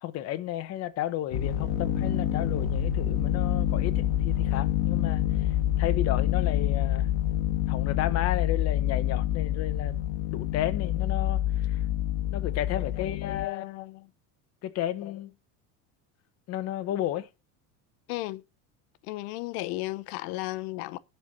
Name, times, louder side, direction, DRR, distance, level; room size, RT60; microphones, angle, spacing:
voice 1, 0.0-7.1 7.7-10.0 10.3-11.8 12.3-13.6 14.6-15.3 16.5-17.3, left 12 dB, 35° left, 0.9 m, -33 dB
sound 1, 1.3-13.5, left 11 dB, 55° left, 1.4 m, -27 dB
voice 2, 12.8-14.1 18.1-18.4 19.0-21.0, left 18 dB, 85° left, 0.8 m, -35 dB
11.5 x 4.5 x 6.3 m
cardioid pair, 165°, 43 cm